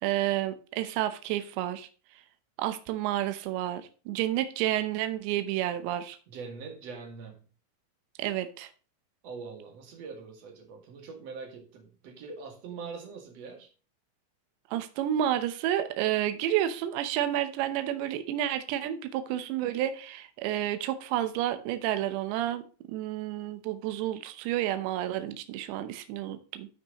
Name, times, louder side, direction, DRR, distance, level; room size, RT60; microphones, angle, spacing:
voice 1, 0.0-1.9 2.6-6.2 8.2-8.7 14.7-22.6 22.9-26.7, right 12 dB, 80° right, 3.1 m, -30 dB
voice 2, 6.3-7.4 9.2-13.7, right 5 dB, 45° right, 2.6 m, -43 dB
12.5 x 5.9 x 3.0 m
omnidirectional pair, 5.1 m